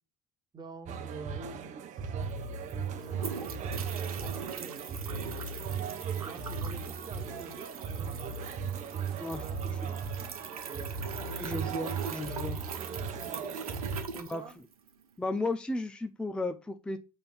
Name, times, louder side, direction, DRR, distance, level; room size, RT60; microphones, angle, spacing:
voice 1, 0.5-2.1 2.9-5.5 6.1-8.3 9.4-10.1 10.7-11.0 14.1-14.5, right 3 dB, 25° right, 5 dB, 1.7 m, -49 dB
sound 1, 0.9-14.0, right 6 dB, 40° right, 1.0 m, -37 dB
sound 2, 2.0-2.1 2.2-15.0, right 6 dB, 85° right, 1.1 m, -42 dB
voice 2, 11.4-12.6 14.2-14.4 15.2-17.0, left 2 dB, 5° left, 7 dB, 0.6 m, -34 dB
6.8 x 3.5 x 5.9 m, 0.30 s
hypercardioid pair, 85°, 18 cm